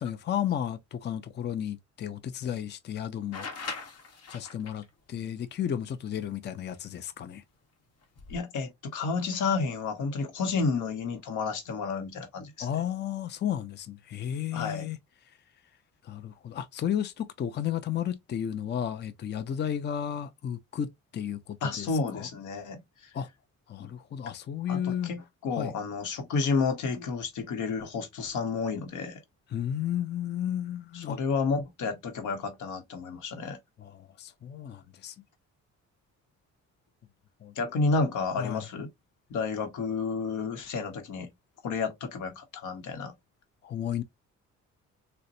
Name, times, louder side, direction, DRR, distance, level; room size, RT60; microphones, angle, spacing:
voice 1, 0.0-3.5 4.3-7.4 12.6-15.0 15.2-15.4 16.0-22.3 23.1-23.3 23.7-25.1 25.5-25.7 29.5-31.2 33.8-35.2 37.4-37.5 38.4-38.7 43.6-44.0, left 9 dB, 35° left, 0.5 m, -33 dB
sound 1, 3.3-4.8 6.7-6.8 8.0-8.4, left 4 dB, 55° left, 1.1 m, -39 dB
voice 2, 8.3-12.7 14.5-14.9 21.6-23.1 23.8-23.9 24.7-29.2 30.9-33.6 37.6-38.9 39.3-41.3 41.6-43.1, left 4 dB, 80° left, 0.9 m, -31 dB
3.9 x 2.1 x 2.5 m
cardioid pair, 90°, 30 cm